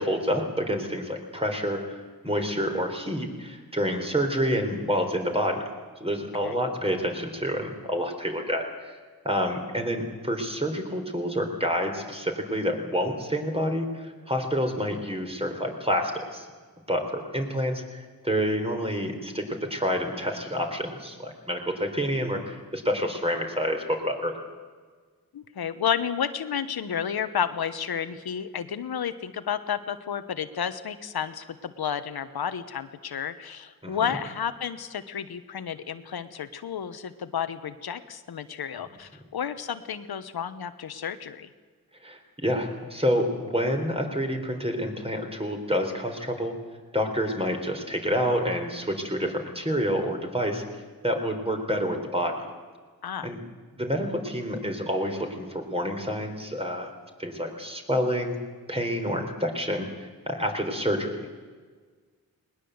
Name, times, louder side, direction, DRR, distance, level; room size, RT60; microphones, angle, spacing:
voice 1, 0.0-5.6 6.0-9.0 9.2-16.5 16.9-24.4 33.8-34.2 42.0-46.5 46.9-50.6 51.0-52.4 53.2-53.4 53.8-56.9 57.2-58.4 58.7-61.3, equal, 15° right, 4 dB, 4.0 m, -28 dB
voice 2, 25.3-41.5 53.0-53.3, left 8 dB, 90° left, 11 dB, 1.2 m, -31 dB
20.0 x 20.0 x 8.0 m, 1.5 s
wide cardioid pair, 80°, 36 cm